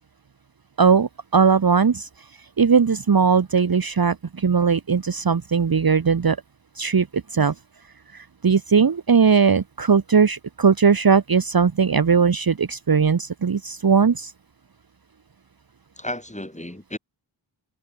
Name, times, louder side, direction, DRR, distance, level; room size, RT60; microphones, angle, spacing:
voice 1, 0.8-2.1 2.6-6.4 6.8-7.5 8.1-14.3, right 6 dB, 45° right, 1.1 m, -19 dB
voice 2, 16.0-17.0, left 1 dB, 15° left, 7.5 m, -33 dB
cardioid pair, 40°, 48 cm